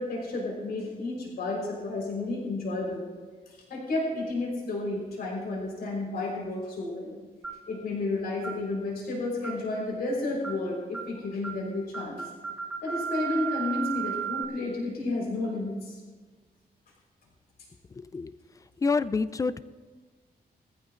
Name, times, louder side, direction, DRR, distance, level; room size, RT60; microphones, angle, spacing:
voice 1, 0.0-3.0 3.5-7.2 7.7-12.3 12.8-16.0, left 2 dB, 85° left, -3 dB, 4.2 m, -31 dB
sound 1, 7.4-7.7 8.4-8.6 9.4-9.7 10.4-10.6 10.9-11.1 11.4-11.6 11.9-14.4, right 7 dB, 5° right, 1.0 m, -34 dB
voice 2, 17.9-18.3 18.8-19.6, left 4 dB, 20° left, 14 dB, 0.4 m, -27 dB
23.0 x 14.5 x 2.5 m, 1.5 s
wide cardioid pair, 165°, 16 cm